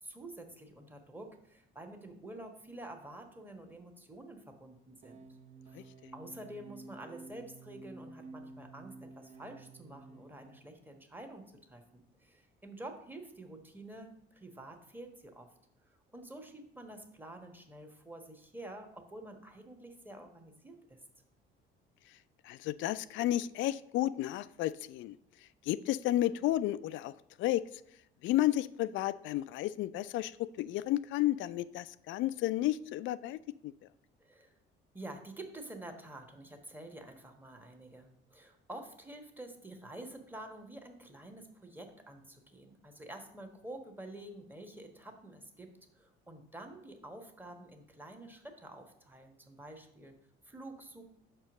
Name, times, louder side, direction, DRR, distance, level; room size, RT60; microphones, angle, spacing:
voice 1, 0.0-5.2 5.7-15.5 16.1-21.0 34.2-34.5 34.9-50.1 50.4-51.0, right 1 dB, 5° right, 4 dB, 1.3 m, -49 dB
sound 1, 5.0-10.7, right 3 dB, 25° right, 0.7 m, -52 dB
voice 2, 22.4-25.2 25.7-27.1 27.4-27.6 28.2-33.7, left 14 dB, 45° left, 15 dB, 0.4 m, -32 dB
5.9 x 4.4 x 6.3 m, 0.74 s
figure-of-eight pair, 50°, 29 cm